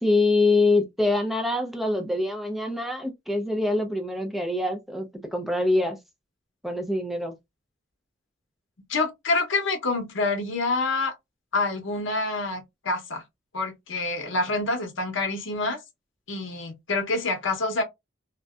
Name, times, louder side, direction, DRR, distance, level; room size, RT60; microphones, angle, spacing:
voice 1, 0.0-6.0 6.6-7.3, left 2 dB, ahead, 0.4 m, -24 dB
voice 2, 8.9-11.1 11.5-13.2 13.5-15.8 16.3-17.8, left 3 dB, 70° left, 0.8 m, -27 dB
2.5 x 2.1 x 2.3 m
head